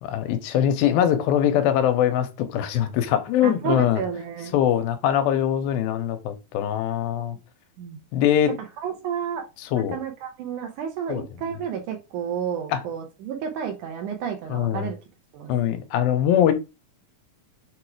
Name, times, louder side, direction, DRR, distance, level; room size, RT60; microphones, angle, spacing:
voice 1, 0.0-4.0 4.5-7.4 8.1-8.5 9.7-10.0 11.1-11.2 12.7-12.8 14.5-14.9 15.5-16.5, left 10 dB, 90° left, 2.5 m, -22 dB
voice 2, 3.4-4.5 7.8-8.0 8.8-9.5 9.7-15.0 15.3-15.5, right 7 dB, 70° right, 2.1 m, -31 dB
6.7 x 3.1 x 4.6 m
omnidirectional pair, 4.3 m